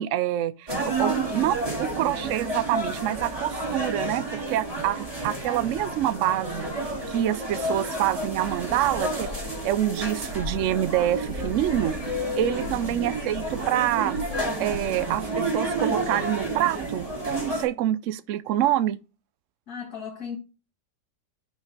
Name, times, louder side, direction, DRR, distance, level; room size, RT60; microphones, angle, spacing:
voice 1, 0.0-9.3 9.6-14.2 14.6-19.0, right 12 dB, 85° right, 0.6 m, -26 dB
sound 1, 0.7-17.6, right 2 dB, 20° right, 3.0 m, -30 dB
sound 2, 9.2-15.4, left 5 dB, 90° left, 1.7 m, -42 dB
voice 2, 12.6-13.1 19.7-20.4, left 7 dB, 60° left, 2.1 m, -37 dB
5.8 x 5.5 x 5.1 m
omnidirectional pair, 1.9 m